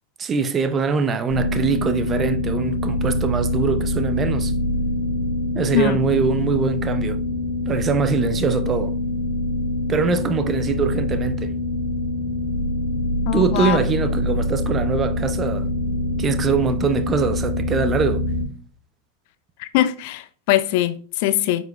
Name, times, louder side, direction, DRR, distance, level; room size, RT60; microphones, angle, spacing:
voice 1, 0.2-4.5 5.5-7.2 7.7-9.0 9.9-11.5 13.3-15.7 16.2-18.2, right 5 dB, 20° right, 0.6 m, -23 dB
sound 1, 1.3-18.4, left 1 dB, 10° left, 2.9 m, -24 dB
voice 2, 13.2-13.8 19.6-21.6, left 14 dB, 50° left, 0.5 m, -22 dB
8.9 x 5.6 x 2.3 m
figure-of-eight pair, 90°, 0 cm